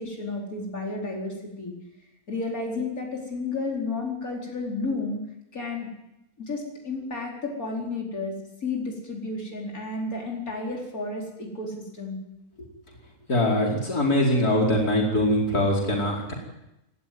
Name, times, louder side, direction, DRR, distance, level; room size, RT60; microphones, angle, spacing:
voice 1, 0.0-1.7 2.3-5.2 5.5-5.9 6.4-12.2, left 3 dB, 70° left, -1 dB, 5.1 m, -32 dB
voice 2, 13.3-16.3, left 1 dB, 85° left, -2 dB, 5.2 m, -22 dB
28.0 x 14.0 x 9.5 m, 0.89 s
omnidirectional pair, 1.6 m